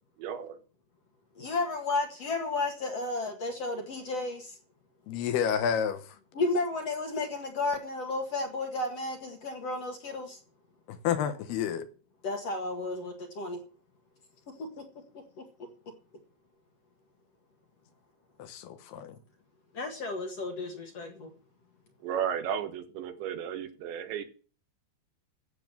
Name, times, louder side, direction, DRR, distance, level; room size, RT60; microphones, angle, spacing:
voice 1, 0.2-0.6 22.0-24.2, right 8 dB, 85° right, 3.9 m, -34 dB
voice 2, 1.4-4.6 6.3-10.4 12.2-13.6 14.6-14.8 15.4-15.5 19.7-21.3, left 2 dB, 50° left, 2.2 m, -33 dB
voice 3, 5.1-6.0 10.9-11.9 18.4-19.2, left 8 dB, 75° left, 2.9 m, -30 dB
14.5 x 7.6 x 7.6 m
omnidirectional pair, 5.0 m